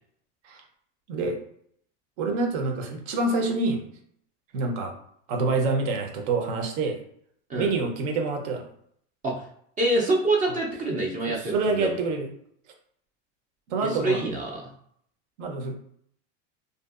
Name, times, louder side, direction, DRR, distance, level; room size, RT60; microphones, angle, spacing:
voice 1, 2.2-3.8 4.5-4.9 5.3-7.0 7.5-8.7 11.3-12.3 13.7-14.2 15.4-15.7, right 3 dB, 70° right, 4 dB, 0.7 m, -27 dB
voice 2, 9.8-12.0 13.8-14.7, right 2 dB, 20° right, -2 dB, 0.4 m, -26 dB
2.7 x 2.4 x 2.3 m, 0.67 s
supercardioid pair, 125°, 37 cm